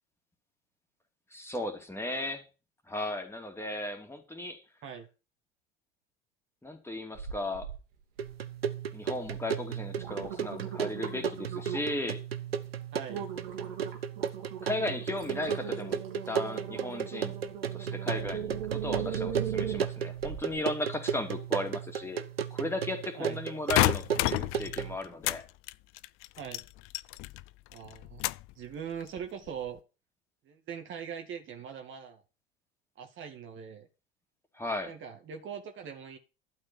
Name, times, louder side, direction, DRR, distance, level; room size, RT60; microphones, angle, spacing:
voice 1, 1.3-2.4 2.9-4.6 6.6-7.7 8.9-12.2 14.6-17.4 17.7-22.2 22.5-25.4 34.5-34.9, left 1 dB, 10° left, 4 dB, 2.9 m, -36 dB
sound 1, 7.1-7.8 8.2-8.7 9.2-9.4 9.8-12.0 12.5-12.7 13.1-20.6 21.1-21.2, right 8 dB, 65° right, 2.8 m, -39 dB
sound 2, 8.2-25.0, right 7 dB, 85° right, 0.8 m, -35 dB
voice 2, 12.9-13.2 23.2-23.4 26.4-26.6 27.7-28.2 28.6-29.8 30.5-32.2 33.0-33.9 34.8-36.2, right 7 dB, 40° right, 5 dB, 2.2 m, -41 dB
sound 3, 23.7-25.4 25.7-27.4 27.7-28.5 29.0-29.5, left 20 dB, 45° left, 0.5 m, -29 dB
12.0 x 5.7 x 7.0 m, 0.31 s
figure-of-eight pair, 75°, 30 cm